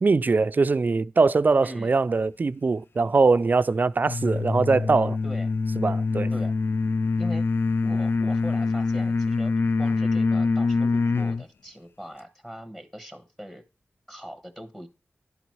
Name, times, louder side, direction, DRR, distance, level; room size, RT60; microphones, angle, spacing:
voice 1, 0.0-5.2 5.8-6.3, right 4 dB, 45° right, 0.3 m, -22 dB
voice 2, 1.6-1.9 5.2-5.5 6.3-6.5 7.2-7.5 7.8-9.5 9.8-13.6 14.1-14.9, equal, 10° left, 1.2 m, -40 dB
sound 1, 4.1-11.4, left 4 dB, 60° left, 0.4 m, -24 dB
11.0 x 4.0 x 4.6 m
wide cardioid pair, 95°, 4 cm